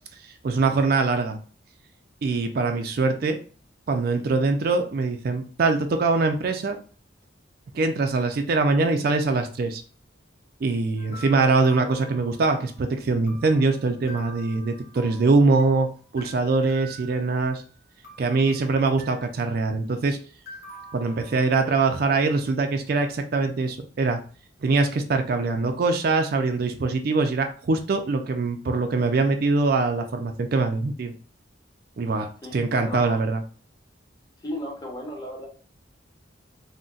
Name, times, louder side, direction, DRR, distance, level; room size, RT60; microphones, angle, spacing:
voice 1, 0.2-1.4 2.2-3.4 3.9-6.8 7.7-9.8 10.6-17.6 18.2-20.2 20.9-24.2 24.6-31.1 32.0-33.4, right 3 dB, 50° right, 6 dB, 0.4 m, -23 dB
sound 1, 11.0-12.8 13.3-15.8 16.2-17.6 18.0-19.4 20.5-21.9, right 1 dB, 50° left, 1.1 m, -46 dB
voice 2, 32.4-33.2 34.4-35.5, left 1 dB, 20° left, -1 dB, 0.8 m, -35 dB
3.8 x 2.1 x 2.3 m, 0.39 s
head